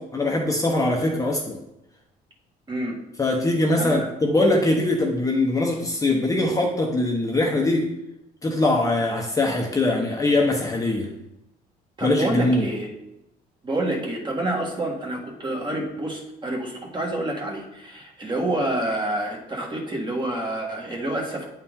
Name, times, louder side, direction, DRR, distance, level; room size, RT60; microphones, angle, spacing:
voice 1, 0.0-1.6 3.2-7.9 8.4-11.1 12.0-12.7, left 2 dB, 20° left, 0 dB, 0.9 m, -22 dB
voice 2, 12.0-12.9 13.6-21.5, right 1 dB, 25° right, 0 dB, 1.6 m, -28 dB
8.5 x 4.3 x 3.7 m, 0.87 s
cardioid pair, 110°, 17 cm